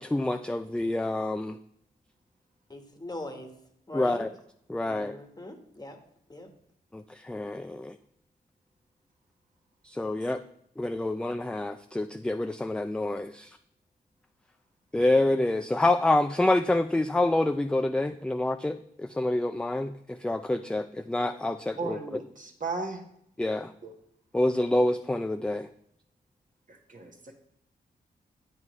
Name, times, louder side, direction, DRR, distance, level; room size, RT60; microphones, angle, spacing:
voice 1, 0.0-1.6 3.9-4.3 4.7-5.2 6.9-8.0 9.8-10.4 10.8-13.6 14.9-22.2 23.4-23.7 24.3-25.7, left 2 dB, 5° left, 8 dB, 0.3 m, -27 dB
voice 2, 2.7-3.5 3.9-4.3 4.9-6.0 6.3-6.5, left 1 dB, 25° left, 4 dB, 1.2 m, -41 dB
voice 3, 21.8-23.0 23.8-23.9 26.7-27.3, right 3 dB, 50° right, 3 dB, 1.3 m, -36 dB
7.9 x 5.4 x 3.1 m, 0.71 s
cardioid pair, 60°, 17 cm